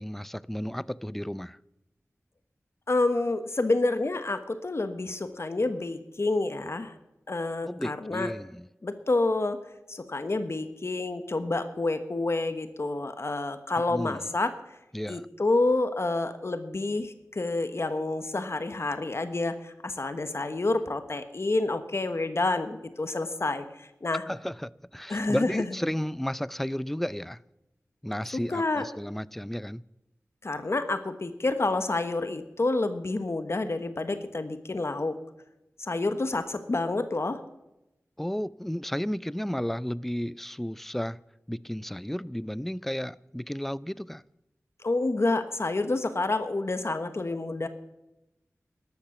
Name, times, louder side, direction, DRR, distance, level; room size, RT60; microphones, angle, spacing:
voice 1, 0.0-1.6 7.6-8.7 13.9-14.2 14.9-15.3 24.3-27.4 28.0-29.8 38.2-41.2 41.5-44.2, equal, 5° left, 0.4 m, -33 dB
voice 2, 2.9-6.9 7.3-8.3 8.8-9.6 9.9-14.5 15.1-24.2 25.1-25.6 28.3-28.9 30.4-35.2 35.8-37.4 44.8-47.7, left 2 dB, 55° left, 1.2 m, -28 dB
13.0 x 12.0 x 7.1 m
wide cardioid pair, 55°, 5 cm